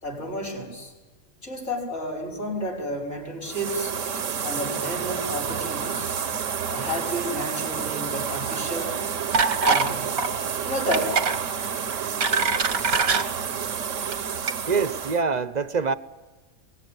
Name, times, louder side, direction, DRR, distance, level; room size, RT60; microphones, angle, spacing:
voice 1, 0.0-0.9 1.4-4.0 4.4-6.3 6.7-9.1 9.6-10.1 10.6-11.2 11.6-11.8, equal, 55° left, 6.4 m, -31 dB
sound 1, 3.4-15.2, right 7 dB, 65° right, 1.3 m, -30 dB
sound 2, 9.3-9.9 10.2-10.4 10.9-11.4 11.9-13.2 14.0-14.1 14.5-14.6, right 5 dB, 90° right, 2.0 m, -23 dB
voice 2, 14.7-15.9, right 5 dB, 35° right, 0.9 m, -24 dB
24.0 x 19.5 x 9.7 m
omnidirectional pair, 1.4 m